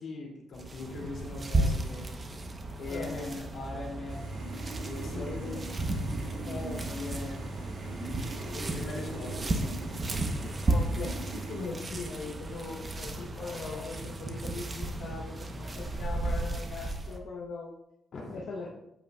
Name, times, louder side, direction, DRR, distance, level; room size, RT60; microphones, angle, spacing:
voice 1, 0.0-2.1 2.8-4.4 4.8-5.5 6.8-7.5 8.6-9.7 18.1-18.4, left 2 dB, 55° left, -2 dB, 2.6 m, -40 dB
sound 1, 0.5-17.2, right 2 dB, 30° right, 0.9 m, -34 dB
voice 2, 2.9-3.4 5.1-5.6 6.4-7.0 8.3-9.4 10.3-17.7 18.3-18.7, left 4 dB, 75° left, -3 dB, 1.0 m, -41 dB
sound 2, 4.1-11.7, right 2 dB, 60° right, 1.8 m, -40 dB
8.7 x 7.7 x 2.3 m, 0.84 s
cardioid pair, 120°, 0 cm